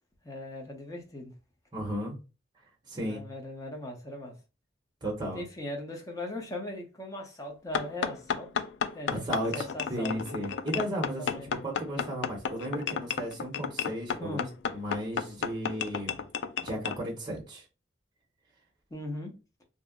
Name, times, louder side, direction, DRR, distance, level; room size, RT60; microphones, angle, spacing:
voice 1, 0.2-1.3 3.0-4.3 5.3-8.5 8.9-9.2 9.5-10.2 11.2-11.5 14.2-14.5 18.9-19.3, left 1 dB, 20° left, 0.7 m, -39 dB
voice 2, 1.7-2.2 2.9-3.2 5.0-5.4 9.1-11.4 11.6-14.4 14.7-16.2 16.6-17.6, equal, 25° right, 0.8 m, -34 dB
sound 1, 7.7-17.0, left 7 dB, 85° left, 0.3 m, -33 dB
2.7 x 2.0 x 3.5 m
head